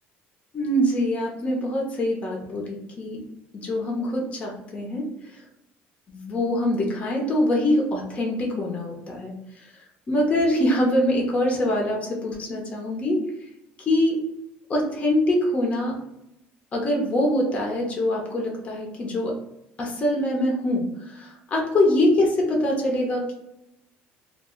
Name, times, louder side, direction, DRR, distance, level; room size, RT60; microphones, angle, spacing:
voice 1, 0.5-3.2 3.6-5.1 6.1-9.7 10.1-13.2 13.8-14.2 14.7-16.0 16.7-19.3 19.8-23.3, left 1 dB, 30° left, -1 dB, 0.7 m, -24 dB
2.1 x 2.1 x 3.6 m, 0.84 s
cardioid pair, 125°, 4 cm